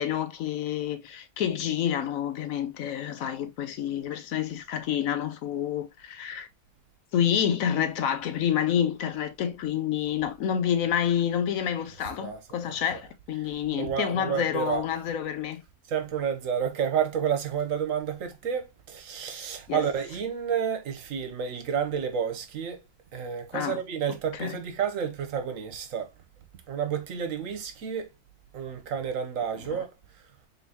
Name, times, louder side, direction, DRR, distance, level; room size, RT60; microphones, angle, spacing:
voice 1, 0.0-6.5 7.1-15.6 19.7-19.9 23.5-23.8 24.3-24.6 29.7-29.8, left 9 dB, 70° left, 0.9 m, -28 dB
voice 2, 13.7-14.9 15.9-22.8 23.1-26.1 26.7-28.1 28.5-29.9, right 7 dB, 65° right, 1.1 m, -30 dB
3.8 x 3.8 x 2.7 m
omnidirectional pair, 1.6 m